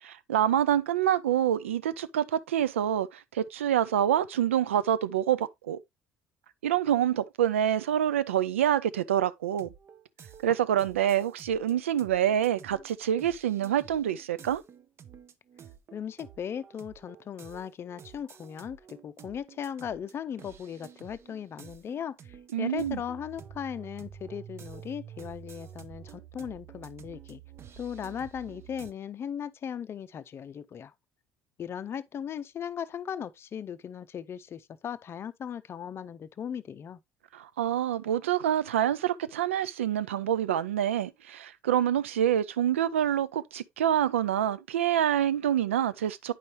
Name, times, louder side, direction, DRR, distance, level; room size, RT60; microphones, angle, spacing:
voice 1, 0.0-5.8 6.6-9.7 10.4-14.6 22.5-23.0 37.3-46.3, right 10 dB, 80° right, 0.4 m, -26 dB
sound 1, 9.5-28.9, right 9 dB, 40° right, 0.7 m, -49 dB
voice 2, 15.9-27.4 27.8-30.9 31.6-37.0, left 8 dB, 40° left, 0.5 m, -38 dB
9.1 x 5.3 x 2.9 m
figure-of-eight pair, 60°, 7 cm